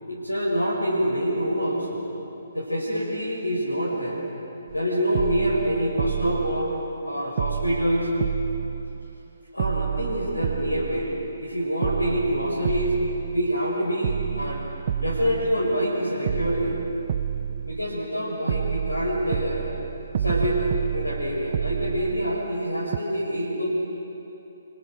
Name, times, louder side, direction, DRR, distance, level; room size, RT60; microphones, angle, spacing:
voice 1, 0.1-2.0 2.5-4.2 4.7-6.7 7.1-8.1 9.5-11.1 11.4-13.0 13.3-14.6 14.9-16.8 17.6-19.7 20.2-23.7, equal, 85° left, -6 dB, 6.1 m, -26 dB
sound 1, 4.7-4.8 5.1-7.1 7.4-9.3 9.6-11.5 11.8-13.7 14.0-15.9 16.3-18.2 18.5-22.6 22.9-23.0, right 9 dB, 45° right, 0.5 m, -30 dB
29.0 x 25.5 x 6.3 m, 3.0 s
figure-of-eight pair, 135°, 0 cm